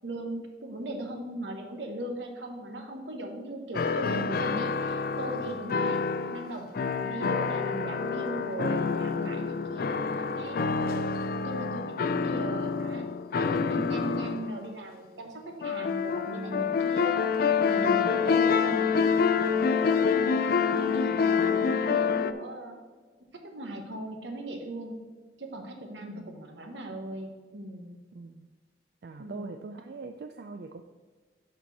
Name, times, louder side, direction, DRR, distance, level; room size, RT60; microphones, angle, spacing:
voice 1, 0.0-6.0 6.3-11.0 11.4-13.1 13.3-17.2 17.6-19.6 20.0-22.8 23.3-25.0 25.4-28.0 29.2-29.5, right 1 dB, 80° right, 4 dB, 1.2 m, -38 dB
sound 1, 3.7-14.6 15.6-22.3, left 5 dB, 55° left, 0.4 m, -27 dB
voice 2, 12.1-12.7 26.0-26.3 28.1-28.5 29.0-30.8, right 3 dB, 60° right, 6 dB, 0.4 m, -43 dB
11.0 x 4.4 x 4.1 m, 1.4 s
head